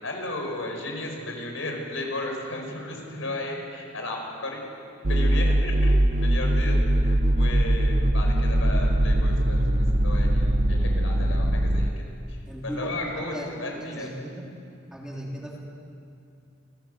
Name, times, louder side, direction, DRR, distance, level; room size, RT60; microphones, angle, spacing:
voice 1, 0.0-4.6 5.0-14.3, left 2 dB, 80° left, 1 dB, 5.2 m, -35 dB
sound 1, 5.0-11.9, right 1 dB, 50° right, 1.0 m, -21 dB
voice 2, 12.5-14.5 14.9-15.6, equal, 5° right, -2 dB, 3.2 m, -37 dB
28.0 x 16.5 x 8.0 m, 2.6 s
head